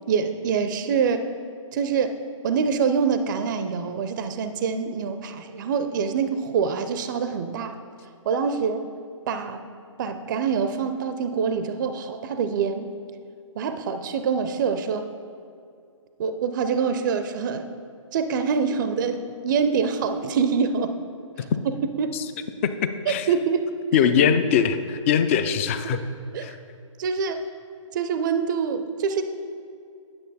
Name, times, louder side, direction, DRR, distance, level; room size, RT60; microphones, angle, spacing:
voice 1, 0.1-1.2 1.7-2.2 2.4-7.8 8.3-8.9 9.3-9.6 10.0-12.9 13.6-15.1 16.2-17.7 18.1-21.0 21.4-22.2 23.1-23.7 26.3-26.5 27.0-27.5 27.9-29.2, right 6 dB, 40° right, 9 dB, 0.5 m, -25 dB
voice 2, 23.9-26.0 26.4-26.5, left 8 dB, 25° left, 10 dB, 0.4 m, -21 dB
9.4 x 6.8 x 4.0 m, 2.4 s
figure-of-eight pair, 140°, 17 cm